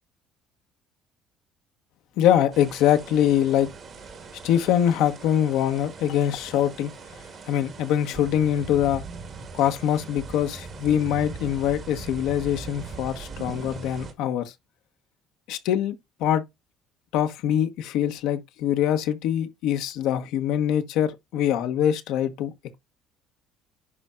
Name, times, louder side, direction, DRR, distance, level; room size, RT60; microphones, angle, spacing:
voice 1, 2.2-3.7 4.4-6.9 7.5-9.0 9.5-14.5 15.5-15.9 16.2-16.4 17.1-22.5, left 10 dB, 75° left, 1.0 m, -23 dB
sound 1, 2.5-14.1, right 4 dB, 45° right, 1.6 m, -40 dB
11.0 x 4.2 x 2.4 m
cardioid pair, 105°, 0 cm